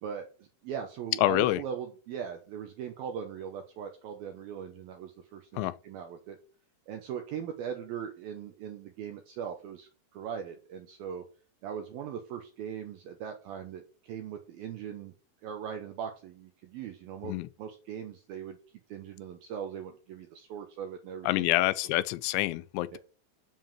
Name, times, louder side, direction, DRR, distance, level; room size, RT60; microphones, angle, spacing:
voice 1, 0.0-6.4 6.9-11.2 11.6-15.1 15.4-17.3 17.6-18.6 18.9-21.7 22.9-23.0, right 8 dB, 75° right, 2.4 m, -40 dB
voice 2, 1.2-1.6 5.6-5.7 17.2-17.5 21.2-23.0, left 18 dB, 90° left, 2.9 m, -27 dB
7.5 x 5.4 x 7.2 m
omnidirectional pair, 5.1 m